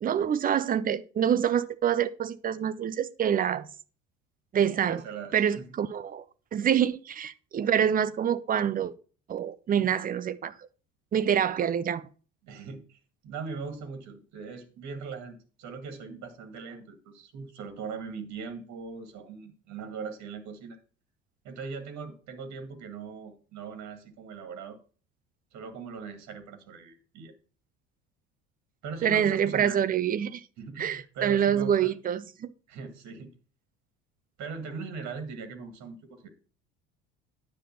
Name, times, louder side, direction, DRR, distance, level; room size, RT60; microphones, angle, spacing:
voice 1, 0.0-3.7 4.5-5.0 5.3-6.2 6.5-8.9 9.3-10.5 11.1-12.0 29.0-30.4 30.8-32.5, right 9 dB, 25° right, 0.6 m, -26 dB
voice 2, 4.9-5.7 12.4-20.8 21.4-24.8 25.5-27.3 28.8-29.8 30.6-31.9 32.7-33.3 34.4-36.3, right 5 dB, 45° right, 1.9 m, -40 dB
9.9 x 7.2 x 4.2 m
figure-of-eight pair, 60°, 38 cm